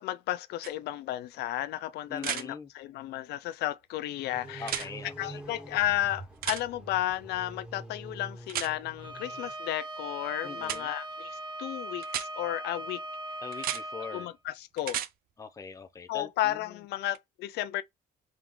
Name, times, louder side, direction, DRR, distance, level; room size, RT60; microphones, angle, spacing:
voice 1, 0.0-4.9 5.2-13.0 14.1-15.0 16.1-17.8, left 14 dB, 75° left, 0.4 m, -33 dB
sound 1, 0.6-0.7 2.2-2.4 4.6-4.9 6.4-6.6 8.5-8.7 10.6-10.8 12.0-12.3 13.5-13.8 14.8-15.1 17.1-17.2, right 11 dB, 60° right, 0.5 m, -33 dB
voice 2, 2.1-2.7 4.6-5.4 10.4-10.9 13.4-14.3 15.4-16.8, left 5 dB, 20° left, 0.6 m, -42 dB
sound 2, 4.3-9.5, right 1 dB, 5° right, 2.1 m, -46 dB
Bowed string instrument, 9.0-14.3, right 1 dB, 25° right, 1.1 m, -40 dB
3.7 x 3.5 x 3.1 m
cardioid pair, 110°, 17 cm